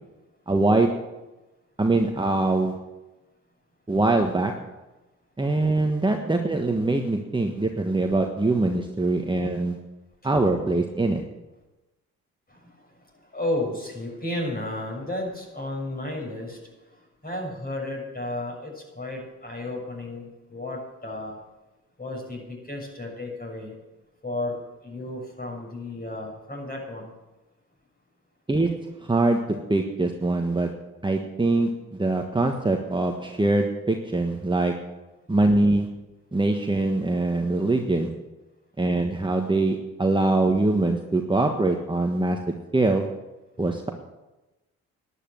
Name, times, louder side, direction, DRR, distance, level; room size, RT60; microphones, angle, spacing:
voice 1, 0.5-1.1 1.8-2.8 3.9-4.7 5.4-9.8 10.2-11.2 28.5-34.9 35.3-35.9 36.3-38.2 38.8-43.2 43.6-43.9, right 2 dB, 15° right, 3 dB, 1.4 m, -23 dB
voice 2, 13.3-16.6 17.2-21.4 22.0-23.8 24.2-27.1, left 1 dB, 25° left, 1 dB, 6.6 m, -33 dB
11.5 x 10.5 x 7.6 m, 1.1 s
hypercardioid pair, 50°, 34 cm